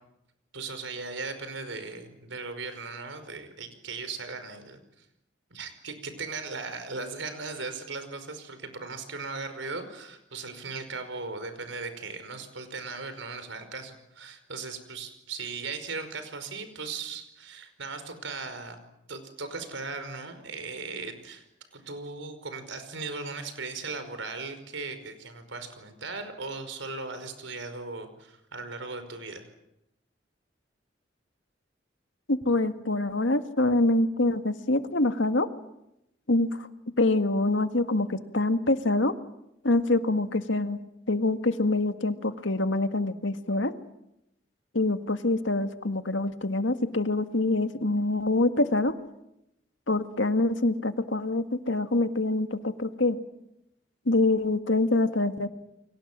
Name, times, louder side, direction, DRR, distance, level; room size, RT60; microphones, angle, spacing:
voice 1, 0.5-5.1 5.5-18.8 19.1-21.4 21.7-29.5, right 4 dB, 90° right, 9 dB, 5.2 m, -38 dB
voice 2, 32.3-35.5 36.3-36.7 37.0-39.1 39.6-40.8 41.1-43.7 44.7-48.9 49.9-53.2 54.1-55.5, left 2 dB, 90° left, 8 dB, 1.9 m, -25 dB
30.0 x 24.5 x 7.6 m, 0.83 s
head